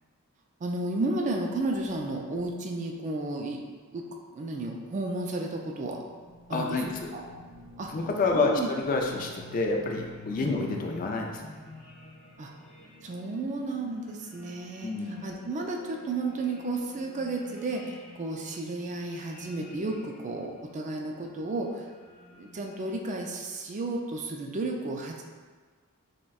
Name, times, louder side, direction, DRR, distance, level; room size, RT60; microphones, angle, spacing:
voice 1, 0.6-3.6 3.9-4.0 4.3-6.0 6.5-6.8 7.1-7.2 7.8-7.9 8.2-8.7 10.4-10.5 12.4-12.5 13.0-14.9 15.2-21.9 22.3-25.2, right 2 dB, 35° right, 1 dB, 0.3 m, -33 dB
sound 1, 5.5-23.4, left 2 dB, 85° left, 1.0 m, -49 dB
voice 2, 6.5-7.1 7.9-11.6 14.8-15.3, left 3 dB, 40° left, 1 dB, 0.4 m, -29 dB
5.9 x 2.2 x 2.3 m, 1.5 s
head